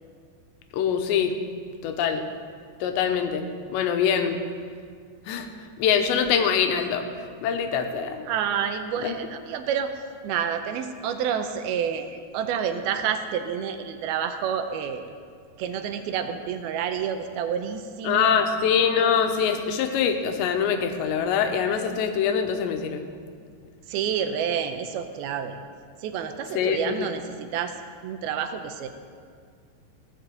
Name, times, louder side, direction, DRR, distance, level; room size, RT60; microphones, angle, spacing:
voice 1, 0.7-1.3 1.8-2.2 2.8-3.4 3.7-4.4 5.3-5.5 5.8-8.3 9.0-9.1 18.0-23.0 26.6-27.1, left 7 dB, 85° left, 6 dB, 3.2 m, -24 dB
voice 2, 8.3-9.9 10.2-15.0 15.6-18.4 23.9-25.6 26.0-27.7 28.0-28.9, right 8 dB, 75° right, 7 dB, 2.4 m, -29 dB
17.5 x 7.8 x 7.7 m, 2.2 s
omnidirectional pair, 4.9 m